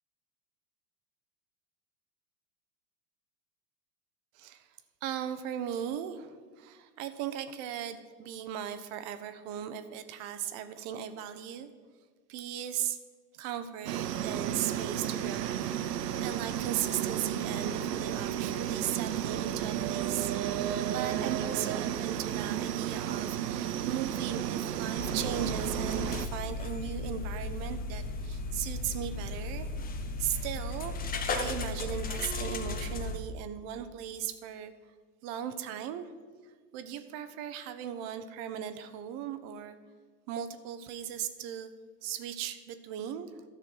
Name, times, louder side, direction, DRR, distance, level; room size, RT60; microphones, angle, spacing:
voice 1, 4.3-4.7 5.0-11.7 12.3-13.0 13.3-15.6 16.2-29.7 30.2-30.9 31.3-34.7 35.2-36.1 36.7-39.7 40.3-41.7 42.0-43.4, right 10 dB, 40° right, 11 dB, 0.9 m, -37 dB
sound 1, 13.9-26.3, right 10 dB, 70° right, 0.8 m, -33 dB
sound 2, 25.0-33.2, left 3 dB, 20° left, 0.8 m, -35 dB
13.0 x 6.3 x 4.6 m, 1.6 s
hypercardioid pair, 95°, 49 cm